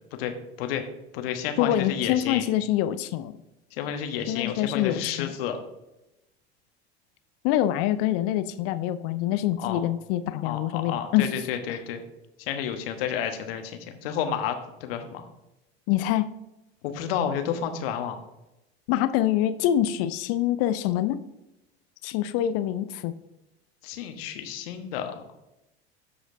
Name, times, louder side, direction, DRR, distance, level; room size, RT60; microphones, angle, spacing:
voice 1, 0.2-0.8 1.1-2.4 3.7-5.6 9.6-9.8 10.3-12.0 12.4-15.2 16.8-18.2 23.8-25.2, left 8 dB, 60° left, 6 dB, 1.2 m, -31 dB
voice 2, 1.6-3.3 4.3-5.3 7.4-11.3 11.7-11.8 15.9-16.3 18.9-21.2 22.0-23.1, left 12 dB, 45° left, 13 dB, 0.5 m, -25 dB
13.5 x 5.0 x 2.7 m, 0.93 s
figure-of-eight pair, 75°, 33 cm